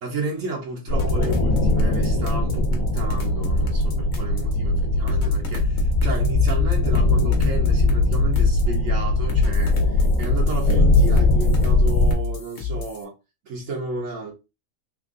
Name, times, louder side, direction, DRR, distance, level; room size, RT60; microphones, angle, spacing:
voice 1, 0.0-13.1 13.4-14.3, right 3 dB, 70° right, 1.2 m, -32 dB
sound 1, 0.9-12.1, left 2 dB, 85° left, 1.3 m, -20 dB
sound 2, 1.0-4.5 5.1-8.7 9.3-13.0, left 4 dB, 40° left, 0.9 m, -30 dB
3.5 x 2.3 x 3.6 m
omnidirectional pair, 1.4 m